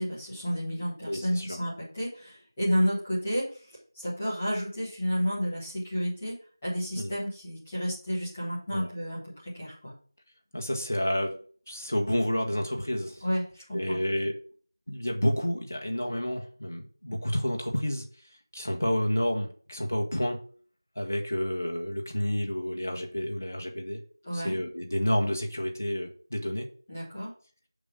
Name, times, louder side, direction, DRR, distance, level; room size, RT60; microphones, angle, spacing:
voice 1, 0.0-6.3 6.6-9.9 13.2-14.0 24.2-24.5 26.9-27.3, equal, 5° left, -16 dB, 1.4 m, -31 dB
voice 2, 1.1-1.6 6.9-7.1 8.7-8.9 10.5-11.4 11.7-13.2 13.7-14.4 14.9-18.0 18.5-20.4 21.0-24.0 24.3-26.7, equal, 40° left, 2 dB, 1.3 m, -30 dB
6.8 x 5.3 x 5.2 m, 0.43 s
figure-of-eight pair, 180°, 2 cm